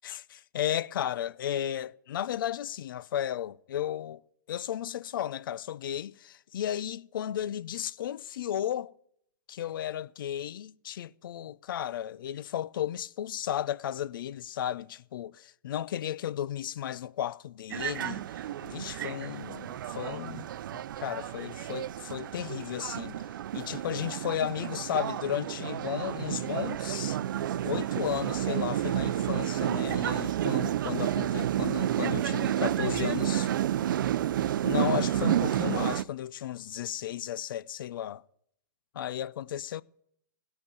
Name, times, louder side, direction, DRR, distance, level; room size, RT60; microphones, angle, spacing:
voice 1, 0.5-4.2 4.5-8.9 9.5-18.2 18.6-20.5 20.7-23.2 23.5-27.2 27.7-33.5 34.6-38.2 38.9-39.8, left 11 dB, 80° left, 0.5 m, -34 dB
sound 1, 17.7-36.0, right 11 dB, 70° right, 0.5 m, -30 dB
16.5 x 5.8 x 9.2 m
hypercardioid pair, 155°, 11 cm